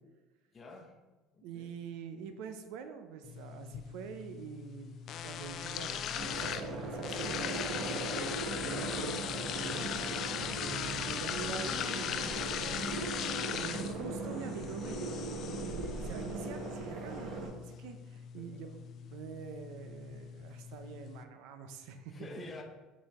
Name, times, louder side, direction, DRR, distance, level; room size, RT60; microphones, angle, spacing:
voice 1, 0.5-1.0 1.3-1.8 18.4-18.6 22.1-22.6, left 2 dB, 25° left, 3 dB, 0.9 m, -48 dB
voice 2, 1.4-5.0 5.2-12.8 13.5-18.8 19.1-22.5, right 6 dB, 75° right, 8 dB, 0.7 m, -46 dB
sound 1, 3.2-21.2, left 8 dB, 50° left, 0.4 m, -40 dB
sound 2, 6.2-17.5, right 2 dB, 55° right, 1.3 m, -39 dB
6.2 x 4.1 x 4.3 m, 1.2 s
cardioid pair, 130°, 0 cm